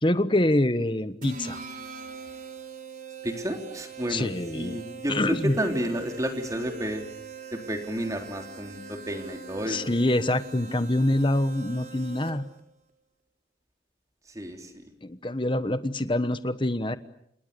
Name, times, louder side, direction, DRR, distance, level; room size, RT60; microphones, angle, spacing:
voice 1, 0.0-1.6 4.1-4.8 5.1-5.5 9.6-12.4 15.0-17.0, left 1 dB, 25° left, 12 dB, 1.2 m, -25 dB
sound 1, 1.2-12.6, right 5 dB, 45° right, 4.3 m, -42 dB
voice 2, 3.2-7.0 7.5-9.9 14.3-14.7, equal, 20° right, 4 dB, 3.5 m, -31 dB
29.5 x 27.5 x 6.9 m, 0.73 s
head